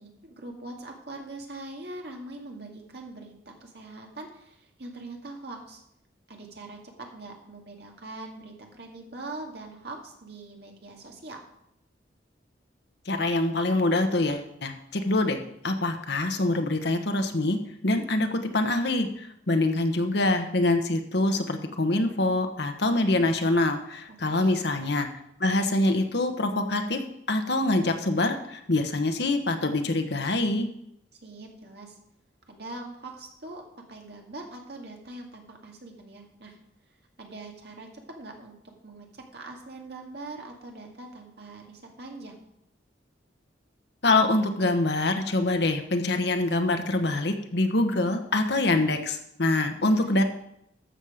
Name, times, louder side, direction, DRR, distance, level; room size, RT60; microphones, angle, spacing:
voice 1, 0.0-5.8 6.3-11.4 24.3-24.6 31.2-32.0 32.5-33.6 33.9-36.6 37.2-38.6 38.8-42.4 49.8-50.2, right 2 dB, 60° right, 1 dB, 2.1 m, -42 dB
voice 2, 13.1-15.4 15.6-17.6 17.8-25.1 25.4-27.0 27.3-30.7 44.0-50.2, left 2 dB, 60° left, 6 dB, 1.2 m, -25 dB
12.5 x 7.3 x 5.0 m, 0.78 s
head